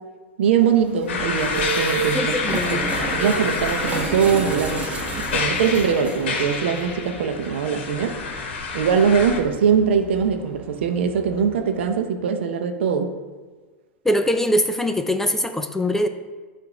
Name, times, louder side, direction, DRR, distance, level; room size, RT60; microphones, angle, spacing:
voice 1, 0.4-8.2 8.7-13.1, right 7 dB, 75° right, 6 dB, 0.6 m, -22 dB
sound 1, 0.6-12.0, right 4 dB, 20° right, 1.0 m, -32 dB
sound 2, 1.1-9.4, left 4 dB, 70° left, 0.9 m, -28 dB
voice 2, 2.1-2.9 14.0-16.1, left 1 dB, 5° left, 7 dB, 0.3 m, -22 dB
7.6 x 2.6 x 4.9 m, 1.4 s
hypercardioid pair, 110°, 6 cm